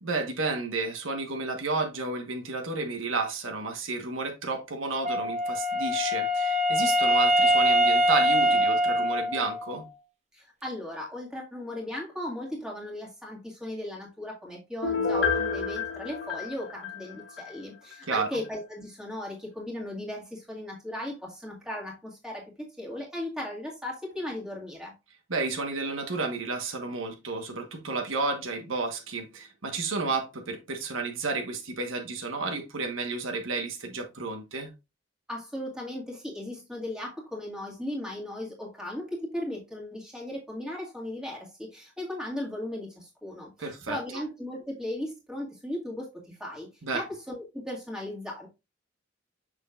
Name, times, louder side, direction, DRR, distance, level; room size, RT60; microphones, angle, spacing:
voice 1, 0.0-9.8 18.0-18.3 25.3-34.7 43.6-44.2 46.8-47.0, right 3 dB, 90° right, 1.3 m, -31 dB
Wind instrument woodwind instrument, 5.0-9.8, equal, 35° right, 1.0 m, -23 dB
voice 2, 10.3-24.9 35.3-46.7 46.9-48.5, left 1 dB, 5° right, 1.9 m, -37 dB
Piano, 14.8-17.5 17.9-18.0, left 5 dB, 75° left, 1.5 m, -29 dB
6.4 x 6.1 x 2.4 m
head